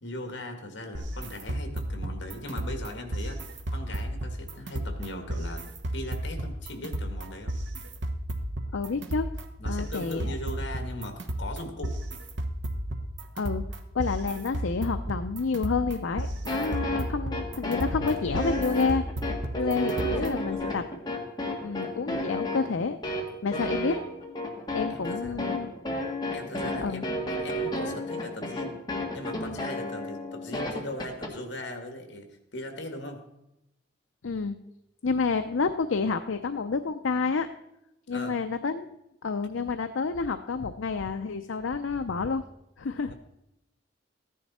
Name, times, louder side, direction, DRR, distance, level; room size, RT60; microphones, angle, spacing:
voice 1, 0.0-5.7 5.9-7.6 9.6-12.0 16.9-17.1 19.6-20.9 24.9-25.5 26.3-28.8 29.1-33.2 38.1-38.4 43.1-43.2, left 1 dB, 70° left, 5 dB, 1.9 m, -39 dB
sound 1, 0.9-20.5, right 1 dB, 70° right, 1.2 m, -34 dB
voice 2, 8.7-9.3 9.7-10.3 13.4-13.7 13.9-19.0 19.6-20.9 21.6-23.0 23.4-24.0 24.7-25.7 26.8-27.0 34.2-34.6 35.0-37.5 38.1-38.9 39.2-42.4 42.8-43.1, left 4 dB, 85° left, 8 dB, 0.6 m, -29 dB
sound 2, 16.5-31.3, left 1 dB, 20° left, 1.7 m, -32 dB
14.5 x 10.0 x 4.3 m, 0.85 s
head